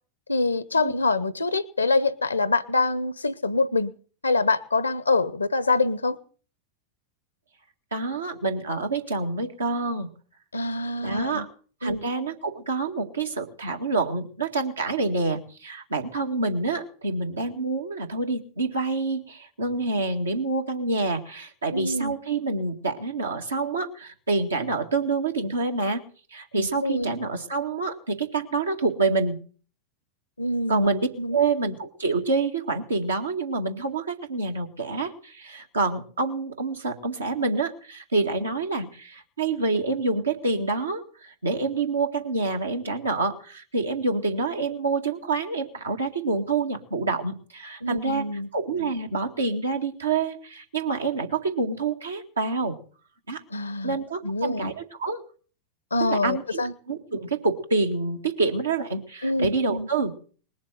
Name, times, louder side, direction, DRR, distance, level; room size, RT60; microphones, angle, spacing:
voice 1, 0.3-3.9 4.2-6.2 10.5-11.5 11.8-12.1 21.7-22.2 26.6-27.2 30.4-30.9 31.2-31.4 47.8-48.5 53.5-54.0 54.2-54.7 55.9-56.7 59.2-59.9, left 3 dB, 80° left, 18 dB, 0.9 m, -25 dB
voice 2, 7.9-10.1 11.0-11.5 11.8-26.0 26.3-29.4 30.7-52.8 53.3-53.4 53.8-55.2 56.0-56.6 56.9-60.1, right 3 dB, 75° right, 3 dB, 2.0 m, -27 dB
20.5 x 7.3 x 7.8 m, 0.42 s
figure-of-eight pair, 90°, 0 cm